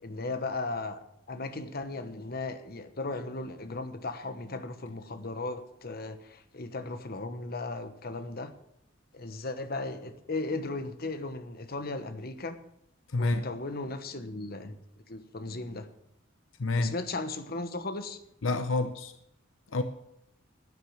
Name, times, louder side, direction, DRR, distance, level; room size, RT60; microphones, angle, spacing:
voice 1, 0.0-1.0 1.3-8.5 9.1-12.6 13.2-14.7 15.1-15.9 16.8-18.2, left 2 dB, 50° left, 10 dB, 1.2 m, -36 dB
voice 2, 13.1-13.5 16.6-16.9 18.4-19.1 19.7-19.8, left 2 dB, 75° left, 9 dB, 0.8 m, -28 dB
12.0 x 9.9 x 7.3 m, 0.78 s
head